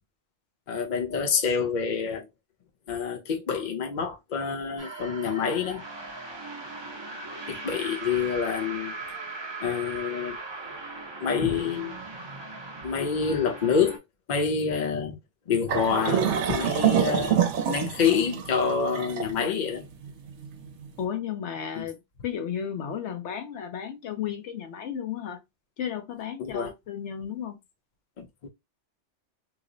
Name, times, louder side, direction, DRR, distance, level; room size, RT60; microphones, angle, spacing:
voice 1, 0.7-2.3 2.9-5.9 7.5-8.9 9.6-10.4 11.2-11.9 12.8-14.0 14.3-15.2 15.5-16.2 16.5-17.4 17.7-19.9 21.8-21.9 26.4-26.7 28.2-28.5, left 6 dB, 45° left, 0.8 m, -27 dB
sound 1, 4.8-14.0, right 3 dB, 30° right, 0.6 m, -39 dB
sound 2, 15.7-20.9, right 8 dB, 75° right, 0.9 m, -26 dB
voice 2, 21.0-25.4 25.8-27.6, left 8 dB, 70° left, 0.9 m, -34 dB
2.9 x 2.0 x 3.8 m
omnidirectional pair, 1.3 m